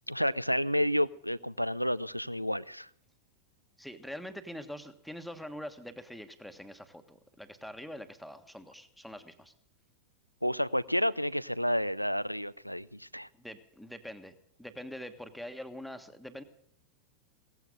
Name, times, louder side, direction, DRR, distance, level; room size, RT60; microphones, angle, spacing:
voice 1, 0.1-2.9 10.4-13.3, equal, 90° left, 18 dB, 0.5 m, -30 dB
voice 2, 3.8-9.5 13.3-16.4, equal, ahead, 8 dB, 1.4 m, -44 dB
17.5 x 15.5 x 3.8 m, 0.74 s
figure-of-eight pair, 90°, 0 cm